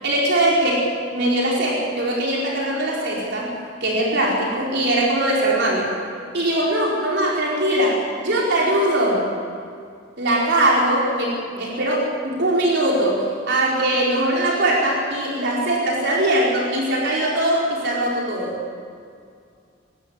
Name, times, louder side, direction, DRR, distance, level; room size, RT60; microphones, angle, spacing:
voice 1, 0.0-3.5 3.8-5.9 6.3-9.3 10.2-18.5, right 1 dB, 65° right, -4 dB, 5.0 m, -21 dB
25.5 x 13.0 x 9.8 m, 2.2 s
head